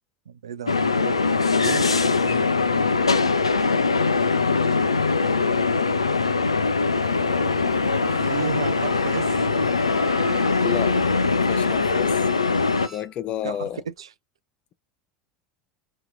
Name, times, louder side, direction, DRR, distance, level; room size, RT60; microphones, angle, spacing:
voice 1, 0.3-1.9 7.8-8.0 8.2-9.3 13.4-14.1, right 7 dB, 80° right, 0.4 m, -33 dB
sound 1, 0.7-12.9, left 4 dB, 90° left, 0.3 m, -22 dB
voice 2, 2.2-2.5 10.6-11.0 11.5-12.1 12.9-13.8, left 10 dB, 40° left, 0.6 m, -30 dB
sound 2, 7.0-12.2, right 7 dB, 50° right, 1.0 m, -42 dB
Bowed string instrument, 8.0-13.2 13.5-13.6, right 1 dB, 20° right, 1.5 m, -44 dB
2.8 x 2.3 x 3.7 m
figure-of-eight pair, 75°, 3 cm